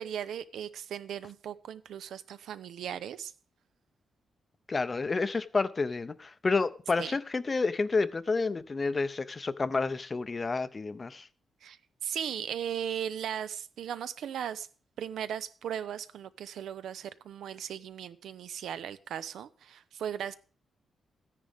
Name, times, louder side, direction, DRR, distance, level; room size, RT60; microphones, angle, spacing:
voice 1, 0.0-3.3 7.0-7.2 11.6-14.7 15.0-20.3, right 9 dB, 85° right, 0.7 m, -37 dB
voice 2, 4.7-11.3, left 4 dB, 25° left, 0.5 m, -30 dB
14.0 x 10.0 x 3.5 m
cardioid pair, 135°, 0 cm